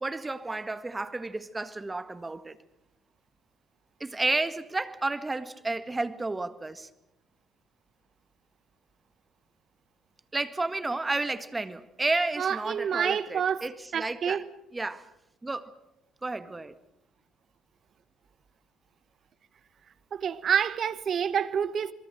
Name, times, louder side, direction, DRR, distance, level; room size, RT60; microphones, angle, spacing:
voice 1, 0.0-2.6 4.0-6.9 10.3-14.4 14.7-15.1 15.4-15.7 16.2-16.7, right 2 dB, 20° right, 1.8 m, -31 dB
voice 2, 12.4-13.7 13.9-14.5 20.1-21.9, right 8 dB, 55° right, 1.3 m, -28 dB
28.0 x 22.5 x 6.4 m
hypercardioid pair, 60°, 0 cm